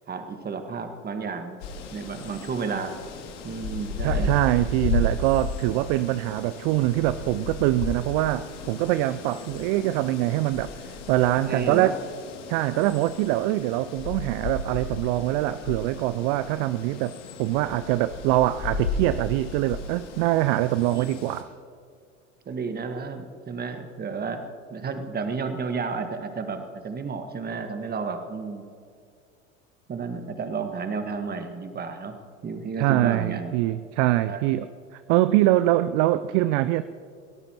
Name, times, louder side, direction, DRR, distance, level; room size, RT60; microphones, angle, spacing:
voice 1, 0.1-1.6 1.9-3.0 3.4-4.3 11.5-11.9 20.9-21.3 22.4-28.7 29.9-32.2 32.4-33.5 34.2-34.5, right 5 dB, 25° right, 7 dB, 1.6 m, -32 dB
sound 1, 1.6-21.4, left 3 dB, 60° left, 2.6 m, -34 dB
voice 2, 4.0-10.7 11.1-12.0 12.5-21.5 32.8-34.7 34.9-36.8, right 15 dB, 45° right, 14 dB, 0.5 m, -24 dB
24.5 x 18.0 x 3.0 m, 2.3 s
figure-of-eight pair, 75°, 40 cm